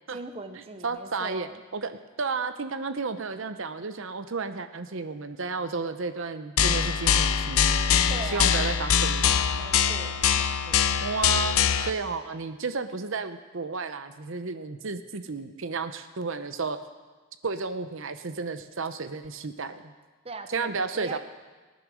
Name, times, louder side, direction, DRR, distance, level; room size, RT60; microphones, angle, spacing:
voice 1, 0.1-1.6 8.1-8.7 9.6-10.9 20.2-21.2, right 3 dB, 25° right, 7 dB, 0.8 m, -40 dB
voice 2, 0.8-7.6 8.3-9.3 11.0-16.8 17.4-19.9 20.5-21.2, right 4 dB, 60° right, 9 dB, 0.7 m, -32 dB
sound 1, 6.6-11.9, left 7 dB, 70° left, 0.6 m, -23 dB
19.0 x 10.0 x 6.2 m, 1.3 s
head